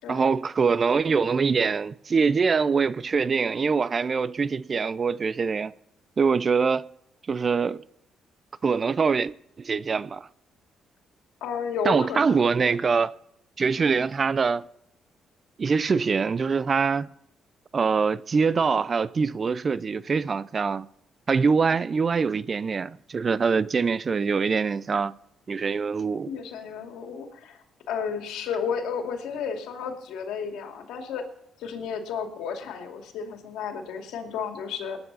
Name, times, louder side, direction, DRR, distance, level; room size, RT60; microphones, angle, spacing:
voice 1, 0.1-5.7 6.2-6.9 7.3-7.8 8.6-10.3 11.8-13.1 13.6-14.7 15.6-17.1 17.7-20.9 21.3-25.1 25.5-26.4, right 5 dB, 40° right, 0.5 m, -24 dB
voice 2, 11.4-12.7 26.2-27.6 27.9-31.3 31.6-35.0, left 6 dB, 90° left, 2.5 m, -32 dB
19.5 x 9.8 x 4.1 m
cardioid pair, 90°, 0 cm